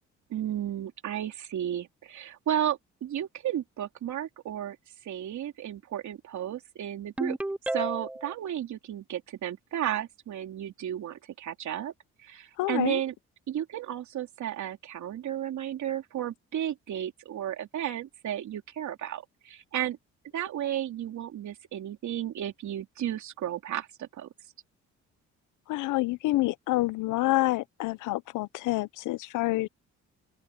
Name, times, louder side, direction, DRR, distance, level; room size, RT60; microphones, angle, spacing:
voice 1, 0.3-4.8 5.0-7.4 7.7-11.9 12.2-13.1 13.5-20.0 20.3-24.3, right 11 dB, 70° right, 3.2 m, -33 dB
Ringtone, 7.2-8.3, right 1 dB, 5° right, 0.3 m, -32 dB
voice 2, 12.6-13.0 25.7-29.7, left 18 dB, 85° left, 0.6 m, -27 dB
open air
cardioid pair, 90°, 30 cm